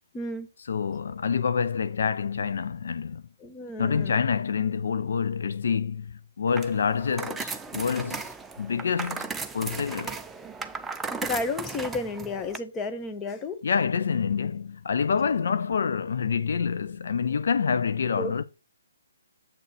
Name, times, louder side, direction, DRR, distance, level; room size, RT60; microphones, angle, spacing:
voice 1, 0.1-0.5 3.4-4.2 11.1-13.6 18.2-18.3, left 3 dB, 15° left, 0.9 m, -32 dB
voice 2, 0.7-3.2 3.8-8.3 8.6-10.2 13.6-18.4, left 6 dB, 60° left, 0.5 m, -27 dB
sound 1, 6.5-12.6, right 4 dB, 5° right, 0.4 m, -36 dB
7.4 x 3.9 x 6.2 m
figure-of-eight pair, 140°, 0 cm